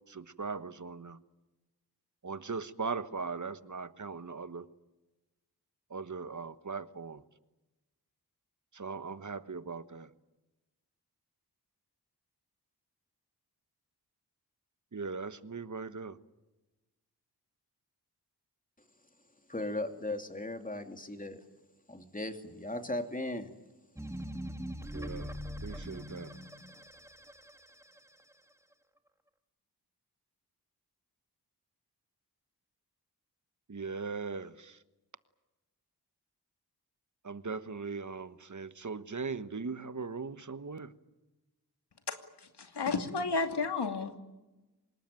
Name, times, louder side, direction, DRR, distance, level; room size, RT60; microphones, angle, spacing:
voice 1, 0.1-1.2 2.2-4.7 5.9-7.2 8.7-10.1 14.9-16.2 24.9-25.3 25.6-26.3 33.7-34.8 37.2-40.9, right 4 dB, 50° right, 1.3 m, -39 dB
voice 2, 19.5-21.4 21.9-23.5, left 2 dB, 20° left, 3.0 m, -37 dB
sound 1, 24.0-28.3, equal, 5° right, 1.9 m, -42 dB
voice 3, 42.1-44.2, left 4 dB, 85° left, 2.6 m, -33 dB
25.5 x 20.5 x 9.2 m
cardioid pair, 50°, 39 cm